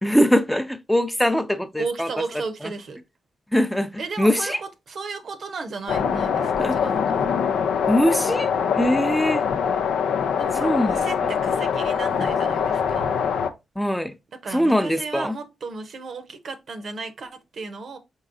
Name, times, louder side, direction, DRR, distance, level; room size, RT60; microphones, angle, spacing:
voice 1, 0.0-2.1 3.5-3.9 4.2-4.6 6.6-6.8 7.9-8.5 8.7-9.4 10.6-11.0 13.8-14.1 14.5-15.3, equal, 5° left, 0.6 m, -21 dB
voice 2, 1.8-3.0 4.0-7.3 10.4-13.1 14.4-18.0, right 4 dB, 65° right, 0.7 m, -34 dB
sound 1, 5.9-13.5, left 7 dB, 80° left, 0.4 m, -23 dB
4.6 x 4.0 x 2.5 m
supercardioid pair, 50°, 0 cm